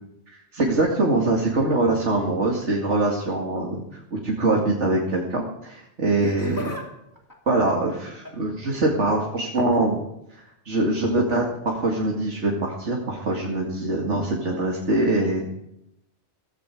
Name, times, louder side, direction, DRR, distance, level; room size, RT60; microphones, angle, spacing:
voice 1, 0.3-3.8 4.1-6.7 7.5-10.0 10.6-15.5, right 2 dB, 80° right, -1 dB, 2.7 m, -23 dB
Laughter, 6.0-6.9 7.2-8.5 9.4-9.8 11.1-11.3 12.2-12.3, left 2 dB, 15° left, 3.0 m, -39 dB
17.0 x 15.5 x 5.0 m, 0.81 s
omnidirectional pair, 1.2 m